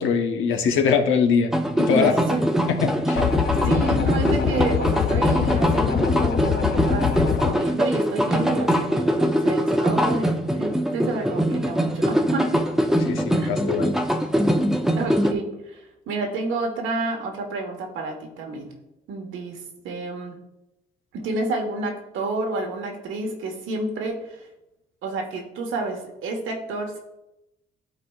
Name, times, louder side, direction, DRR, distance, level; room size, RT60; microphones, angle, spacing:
voice 1, 0.0-2.1 2.8-3.3 13.1-13.9, left 6 dB, 85° left, 5 dB, 1.0 m, -22 dB
sound 1, 1.5-15.3, equal, ahead, 0.7 m, -23 dB
voice 2, 1.9-2.4 3.6-10.3 10.6-12.6 13.4-13.5 15.0-18.7 19.1-20.4 21.1-24.5 25.0-27.0, right 2 dB, 85° right, 2 dB, 1.4 m, -30 dB
sound 2, 3.2-7.5, left 9 dB, 55° left, 0.4 m, -24 dB
12.5 x 4.2 x 2.4 m, 0.91 s
cardioid pair, 90°, 20 cm